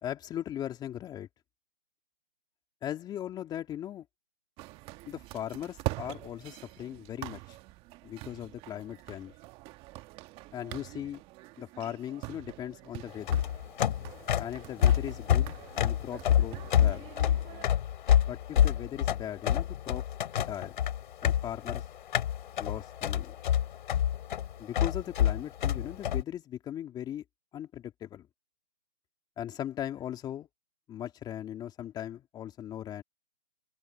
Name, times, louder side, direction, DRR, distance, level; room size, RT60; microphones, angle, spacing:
voice 1, 0.0-1.3 2.8-4.1 5.1-7.6 8.0-9.3 10.5-11.2 11.6-13.5 14.4-17.1 18.3-20.1 20.4-20.8 21.2-21.8 22.6-23.3 24.6-27.2 27.5-28.3 29.4-30.5 30.9-33.0, left 11 dB, 10° left, 2.5 m, -39 dB
sound 1, 4.6-17.7, right 20 dB, 15° right, 1.7 m, -44 dB
sound 2, 13.1-26.2, left 10 dB, 40° left, 4.4 m, -27 dB
hypercardioid pair, 150°, 39 cm